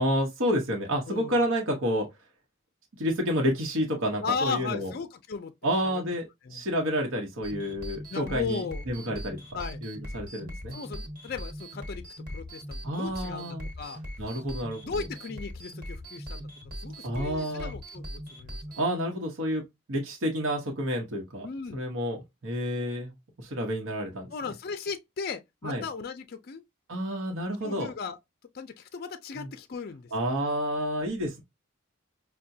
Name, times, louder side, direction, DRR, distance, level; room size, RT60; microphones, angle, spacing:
voice 1, 0.0-2.1 3.0-4.9 5.6-9.4 9.8-10.8 12.8-13.7 14.2-14.9 17.0-17.7 18.8-19.6 19.9-21.5 21.7-24.3 25.6-25.8 26.9-27.9 29.4-29.5 30.1-31.4, equal, 80° right, 0.9 m, -29 dB
voice 2, 1.1-1.4 4.2-5.5 5.8-6.1 6.4-6.6 8.1-8.8 9.5-9.8 10.7-12.0 12.3-14.0 14.8-16.5 16.8-18.6 21.4-21.8 24.3-26.6 27.6-28.2 28.5-30.6, left 5 dB, 50° left, 0.4 m, -36 dB
sound 1, 7.4-18.8, equal, 45° right, 1.3 m, -40 dB
5.6 x 2.2 x 2.6 m
head